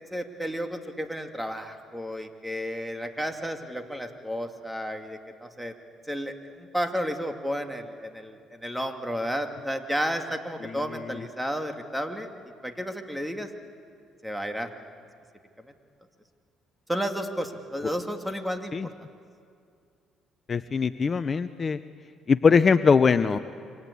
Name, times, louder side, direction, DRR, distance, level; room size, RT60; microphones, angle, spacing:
voice 1, 0.1-5.7 6.1-12.3 12.6-13.5 14.2-14.7 16.9-18.7, equal, 5° right, 5 dB, 2.4 m, -32 dB
voice 2, 20.5-21.8 22.3-23.4, left 5 dB, 40° left, 12 dB, 0.7 m, -21 dB
28.5 x 24.5 x 8.5 m, 2.3 s
supercardioid pair, 80°, 0 cm